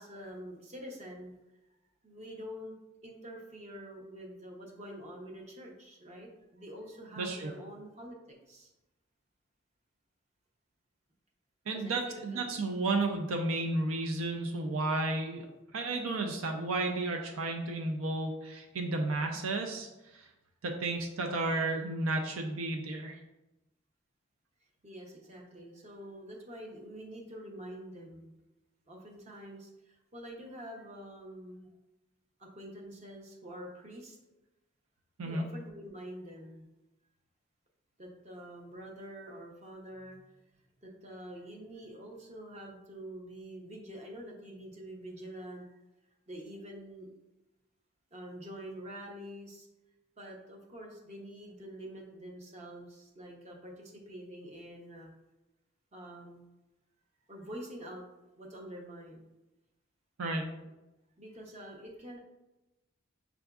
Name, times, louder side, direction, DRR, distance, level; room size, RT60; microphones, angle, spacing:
voice 1, 0.0-1.3 2.0-2.7 3.0-8.2 8.5-8.7 11.7-12.5 24.8-28.3 28.9-31.7 32.4-34.2 35.2-36.7 38.0-40.2 40.8-45.7 46.3-47.1 48.1-49.7 50.2-55.1 55.9-56.5 57.3-58.0 58.4-59.2 61.2-62.2, equal, 35° right, 0 dB, 0.7 m, -46 dB
voice 2, 7.2-7.5 11.7-15.5 15.7-19.9 20.1-20.3 20.6-23.2 35.2-35.4 60.2-60.4, right 2 dB, 90° right, 3 dB, 0.5 m, -32 dB
5.7 x 2.5 x 2.3 m, 0.99 s
head